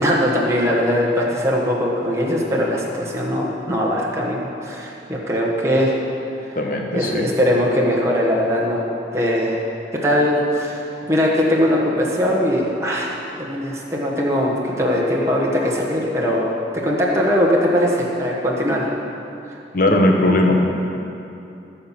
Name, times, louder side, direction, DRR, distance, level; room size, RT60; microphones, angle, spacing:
voice 1, 0.0-5.9 6.5-6.6 6.9-8.8 9.1-9.7 10.0-18.9, equal, 15° right, -4 dB, 1.3 m, -20 dB
voice 2, 6.5-7.2 19.7-20.6, left 1 dB, 50° left, 1 dB, 1.4 m, -18 dB
15.5 x 5.7 x 7.4 m, 2.8 s
head